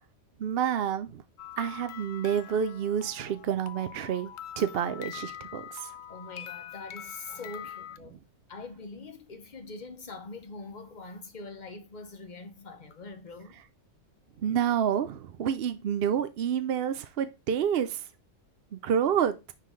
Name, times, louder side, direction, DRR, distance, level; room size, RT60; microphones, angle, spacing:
voice 1, 0.4-1.2 1.6-5.9 8.1-8.2 14.4-18.1 18.7-19.5, right 8 dB, 60° right, 0.7 m, -29 dB
sound 1, 1.4-8.0, left 10 dB, 75° left, 0.4 m, -44 dB
voice 2, 6.1-8.2 8.5-13.6, left 3 dB, 40° left, 0.9 m, -43 dB
9.8 x 3.9 x 3.2 m
omnidirectional pair, 1.4 m